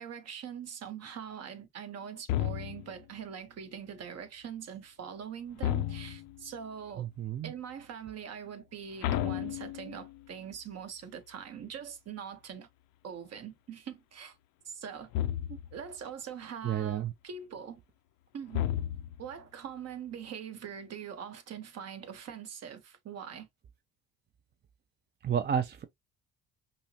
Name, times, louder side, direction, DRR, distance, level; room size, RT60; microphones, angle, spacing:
voice 1, 0.0-7.1 7.4-12.7 13.0-14.4 14.6-15.1 15.5-17.8 18.3-18.7 19.2-23.5, right 8 dB, 50° right, 1.0 m, -43 dB
sound 1, 2.3-3.0 5.6-6.4 9.0-10.2 15.1-15.8 18.5-19.3, left 12 dB, 75° left, 0.5 m, -32 dB
voice 2, 7.0-7.5 16.6-17.1 25.2-25.8, right 8 dB, 35° right, 0.5 m, -31 dB
5.4 x 2.1 x 2.7 m
supercardioid pair, 90°, 32 cm